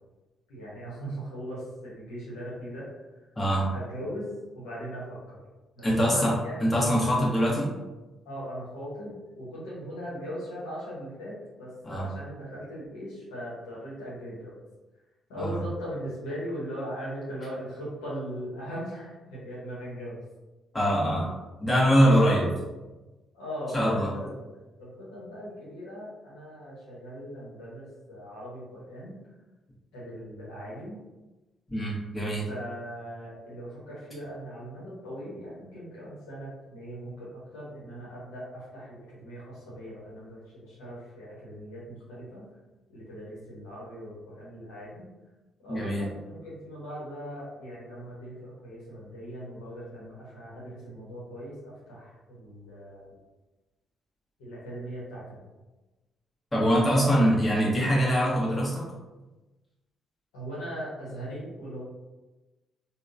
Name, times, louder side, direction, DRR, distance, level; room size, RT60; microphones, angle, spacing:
voice 1, 0.5-2.9 3.7-4.3 4.5-5.4 5.8-6.6 7.0-7.2 8.2-14.5 15.3-20.2 21.9-22.6 23.3-29.1 29.9-31.0 32.5-42.4 42.9-45.1 45.6-53.2 54.4-55.4 56.9-57.0 60.3-61.8, equal, 75° left, -7 dB, 0.9 m, -39 dB
voice 2, 3.4-3.7 5.8-6.3 6.6-7.7 11.8-12.1 15.4-15.6 20.7-21.3 21.6-22.5 23.7-24.1 31.7-32.4 45.7-46.1 56.5-58.9, equal, 20° left, -5 dB, 1.2 m, -23 dB
3.6 x 2.2 x 2.5 m, 1.1 s
figure-of-eight pair, 40°, 0 cm